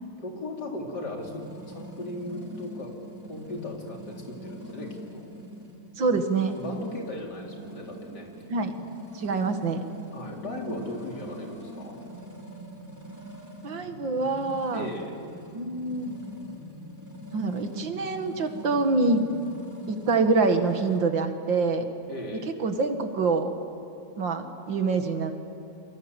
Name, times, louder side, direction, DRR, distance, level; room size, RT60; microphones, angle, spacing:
voice 1, 0.2-2.9 3.2-5.2 6.6-8.4 10.1-12.0 14.7-15.2 22.1-22.5, left 1 dB, 60° left, 0 dB, 4.3 m, -37 dB
sound 1, 1.2-21.0, equal, 10° right, 3.5 m, -43 dB
voice 2, 6.0-6.6 8.5-8.8 9.1-9.8 13.6-14.9 15.5-16.1 17.3-19.2 19.9-21.8 22.6-23.5 24.2-25.3, right 3 dB, 80° right, 6 dB, 2.6 m, -25 dB
29.0 x 23.5 x 8.1 m, 2.8 s
omnidirectional pair, 2.0 m